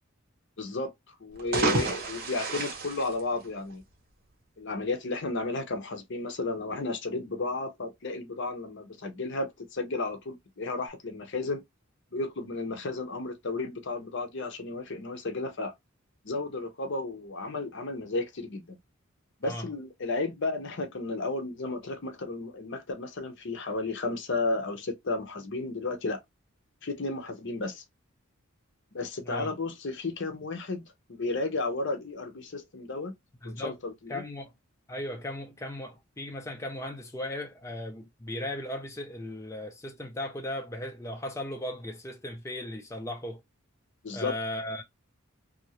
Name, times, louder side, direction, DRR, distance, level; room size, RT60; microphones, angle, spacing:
voice 1, 0.6-0.9 1.2-3.8 4.6-11.6 12.1-15.7 16.2-18.8 19.4-26.2 26.8-27.8 28.9-33.1 33.4-34.2 44.0-44.3, left 3 dB, 60° left, 0.7 m, -33 dB
sound 1, 1.3-3.9, right 3 dB, 50° right, 1.0 m, -31 dB
voice 2, 33.4-33.8 34.1-34.5 34.9-43.4 44.1-44.8, left 1 dB, 15° left, 0.5 m, -37 dB
2.7 x 2.6 x 2.9 m
head